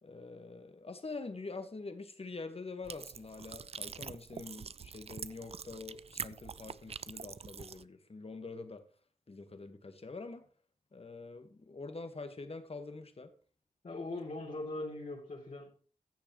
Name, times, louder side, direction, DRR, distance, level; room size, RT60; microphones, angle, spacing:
voice 1, 0.0-8.8 9.3-10.5 10.9-13.3, left 3 dB, 45° left, 1.5 m, -45 dB
sound 1, 2.8-7.8, right 6 dB, 45° right, 0.4 m, -45 dB
voice 2, 13.8-15.7, left 2 dB, 60° left, 3.1 m, -40 dB
15.0 x 6.9 x 3.1 m
cardioid pair, 45°, 14 cm